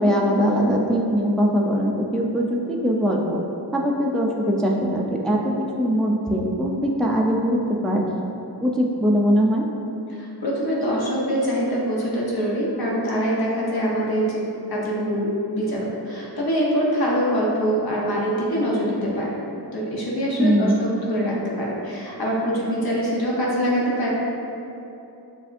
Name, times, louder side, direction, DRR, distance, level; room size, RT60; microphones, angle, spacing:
voice 1, 0.0-3.4 3.7-8.0 8.6-9.7 20.4-20.8, equal, ahead, -1 dB, 0.3 m, -21 dB
voice 2, 10.4-19.3 19.7-24.1, equal, 60° left, -5 dB, 0.9 m, -24 dB
7.2 x 2.6 x 2.5 m, 2.9 s
wide cardioid pair, 90°, 42 cm